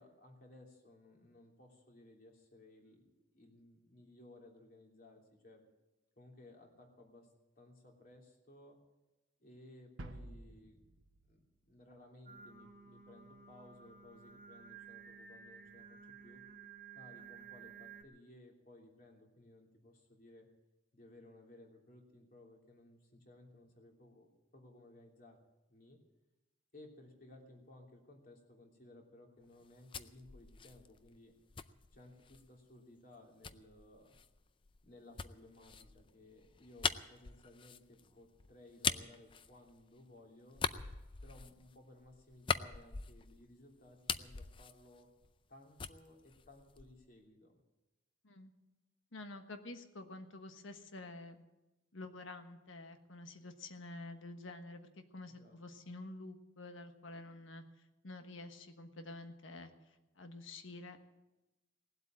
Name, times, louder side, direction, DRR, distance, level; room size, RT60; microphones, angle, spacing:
voice 1, 0.0-3.0 3.3-5.6 6.2-7.3 7.6-8.8 9.4-10.8 11.3-16.4 16.9-20.5 20.9-25.4 25.7-26.0 26.7-31.3 31.9-34.2 34.8-40.6 41.2-45.1 45.5-47.5 55.3-55.6, left 1 dB, 45° left, 0 dB, 3.1 m, -59 dB
sound 1, 10.0-12.0, right 1 dB, 80° right, 1.1 m, -51 dB
Singing, 12.3-18.0, right 6 dB, 45° right, 1.4 m, -54 dB
sound 2, 29.5-32.5 33.4-40.1 40.5-43.5 43.8-45.5 45.8-47.1, left 6 dB, 25° left, 0.4 m, -42 dB
voice 2, 49.1-51.3 51.9-57.6 58.0-61.0, left 2 dB, 85° left, 7 dB, 1.4 m, -49 dB
19.0 x 8.0 x 8.9 m, 1.0 s
head